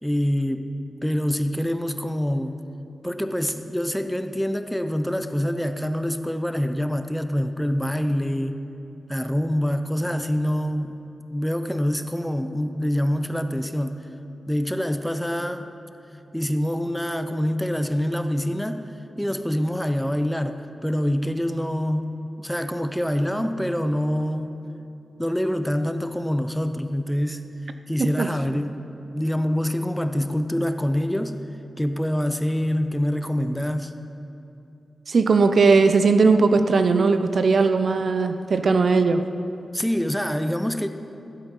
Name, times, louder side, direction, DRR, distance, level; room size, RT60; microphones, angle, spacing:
voice 1, 0.0-0.7 1.0-2.6 3.0-8.6 9.1-11.0 11.3-14.1 14.5-15.7 16.3-18.8 19.2-24.6 25.2-27.5 27.9-28.8 29.1-31.4 31.8-34.0 39.7-40.9, equal, 5° left, 9 dB, 0.7 m, -25 dB
voice 2, 35.1-39.2, right 4 dB, 65° right, 9 dB, 0.6 m, -18 dB
15.0 x 8.1 x 5.5 m, 2.7 s
cardioid pair, 65°, 0 cm